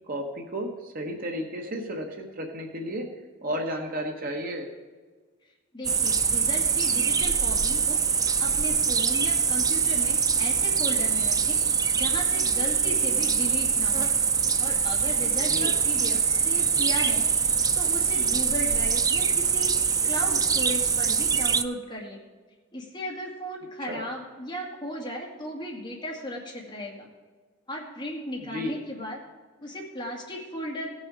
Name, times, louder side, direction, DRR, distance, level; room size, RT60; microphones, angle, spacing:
voice 1, 0.1-3.0 3.4-4.7 15.4-15.7 23.9-24.1 28.4-28.8, equal, 45° right, 3 dB, 1.2 m, -33 dB
voice 2, 5.7-8.0 8.4-11.6 11.9-14.1 14.6-17.5 17.7-19.7 20.0-22.2 22.7-27.1 27.7-29.2 29.6-30.9, left 1 dB, 20° left, -2 dB, 2.1 m, -36 dB
sound 1, 5.8-21.6, right 6 dB, 20° right, 0.3 m, -24 dB
16.5 x 6.5 x 4.9 m, 1.4 s
head